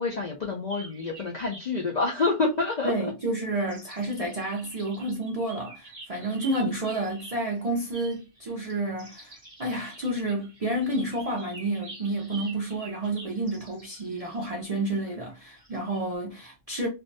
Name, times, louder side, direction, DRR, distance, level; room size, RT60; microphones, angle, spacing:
voice 1, 0.0-3.1, left 3 dB, 60° left, 0.4 m, -28 dB
sound 1, 0.7-1.7 2.1-3.3 3.6-16.0, right 3 dB, 30° right, 0.8 m, -48 dB
voice 2, 2.8-16.9, right 1 dB, 55° right, 0.4 m, -30 dB
2.5 x 2.1 x 2.5 m
omnidirectional pair, 1.3 m